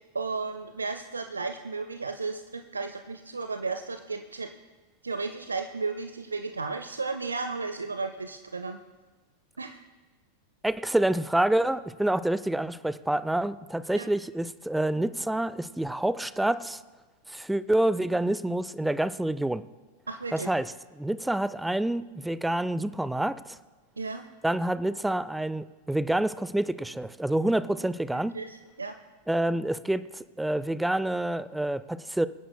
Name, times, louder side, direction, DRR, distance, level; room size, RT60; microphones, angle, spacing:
voice 1, 0.1-4.5 5.0-8.8 9.6-9.8 13.9-14.1 20.1-20.5 24.0-24.3 28.3-28.9, right 4 dB, 75° right, 7 dB, 0.6 m, -34 dB
voice 2, 10.6-16.8 17.3-19.6 20.3-23.6 24.4-28.3 29.3-32.3, right 1 dB, 5° right, 16 dB, 0.4 m, -27 dB
25.5 x 10.0 x 2.2 m, 1.3 s
figure-of-eight pair, 90°, 0 cm